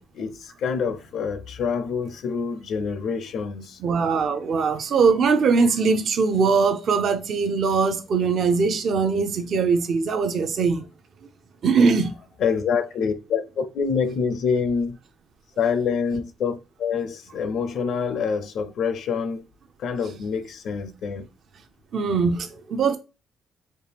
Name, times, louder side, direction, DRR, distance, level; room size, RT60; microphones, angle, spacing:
voice 1, 0.0-3.8 12.4-15.0 15.6-19.4 19.8-21.3, left 6 dB, 70° left, 0.5 m, -26 dB
voice 2, 3.8-10.8 11.6-12.1 21.9-23.0, right 5 dB, 60° right, 0.6 m, -21 dB
4.3 x 2.5 x 3.4 m
cardioid pair, 90°, 0 cm